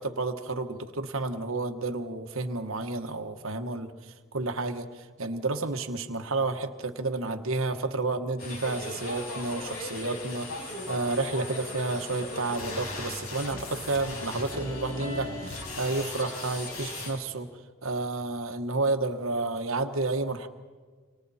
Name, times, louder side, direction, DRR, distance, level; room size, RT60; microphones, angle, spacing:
voice 1, 0.0-17.5 17.8-20.5, right 3 dB, 70° right, 7 dB, 1.4 m, -31 dB
sound 1, 8.4-17.1, left 2 dB, 80° left, 6.6 m, -37 dB
29.5 x 26.5 x 4.3 m, 1.5 s
head